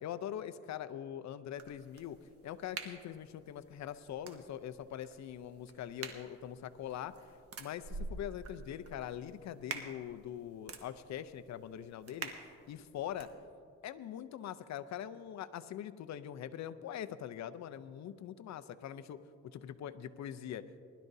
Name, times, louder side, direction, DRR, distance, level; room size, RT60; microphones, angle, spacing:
voice 1, 0.0-2.2 2.4-7.1 7.6-12.3 12.7-13.3 13.8-20.8, left 10 dB, 65° left, 12 dB, 0.6 m, -43 dB
sound 1, 1.6-13.3, right 4 dB, 50° right, 1.3 m, -48 dB
20.0 x 12.0 x 2.7 m, 2.4 s
cardioid pair, 90°, 30 cm